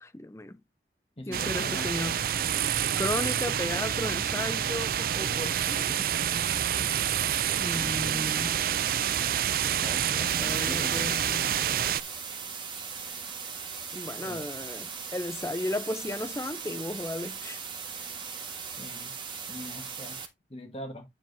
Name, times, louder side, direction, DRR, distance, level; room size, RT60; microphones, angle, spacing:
voice 1, 0.0-0.6 1.3-2.2 3.0-6.0 7.6-8.6 10.2-11.5 13.9-17.6, left 1 dB, 15° left, 0.7 m, -35 dB
voice 2, 1.2-1.9 7.7-8.3 9.8-11.2 14.2-14.5 18.8-19.1 19.5-20.2 20.5-21.0, left 1 dB, 35° left, 1.6 m, -42 dB
sound 1, 1.3-12.0, right 9 dB, 55° right, 0.4 m, -28 dB
sound 2, 10.3-20.3, right 6 dB, 25° right, 1.6 m, -39 dB
10.0 x 7.3 x 2.7 m
head